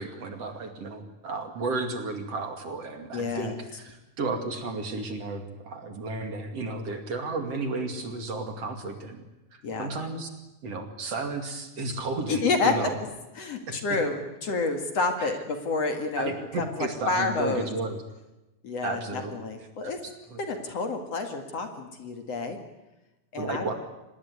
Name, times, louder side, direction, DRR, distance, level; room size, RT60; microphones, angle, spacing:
voice 1, 0.0-9.2 9.5-10.3 10.6-13.0 13.7-13.8 15.2-15.3 16.2-18.0 18.8-19.3 19.8-19.9 20.3-20.4 23.4-23.7, right 3 dB, 50° right, 5 dB, 3.3 m, -33 dB
voice 2, 3.1-3.5 9.6-9.9 12.3-12.9 13.4-17.7 18.6-20.0 20.4-22.6 23.3-23.7, left 3 dB, 50° left, 5 dB, 3.0 m, -29 dB
25.5 x 20.0 x 9.8 m, 1.0 s
omnidirectional pair, 3.8 m